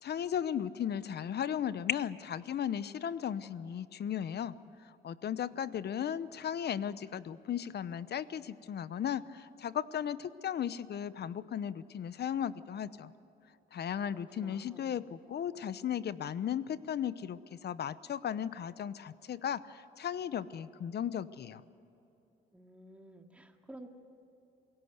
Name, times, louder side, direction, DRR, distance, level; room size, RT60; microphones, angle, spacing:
voice 1, 0.0-4.5 5.0-13.1 13.7-21.6, left 9 dB, 55° left, 16 dB, 0.9 m, -36 dB
voice 2, 14.4-14.9 22.5-23.9, right 1 dB, 5° right, 3 dB, 2.3 m, -52 dB
28.0 x 17.5 x 8.1 m, 3.0 s
cardioid pair, 90°, 20 cm